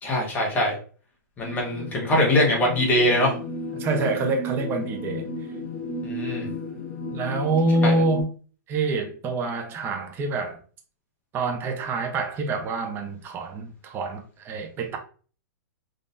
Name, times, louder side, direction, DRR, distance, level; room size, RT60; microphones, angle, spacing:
voice 1, 0.0-0.7 1.4-3.3 6.0-6.5 7.8-8.0, left 1 dB, 15° left, 1.0 m, -22 dB
sound 1, 1.4-8.2, left 2 dB, 60° left, 1.5 m, -34 dB
voice 2, 3.7-5.3 7.1-8.3 8.7-10.6 11.3-15.0, right 3 dB, 20° right, 0.6 m, -26 dB
3.7 x 2.6 x 2.5 m
hypercardioid pair, 145°, 10 cm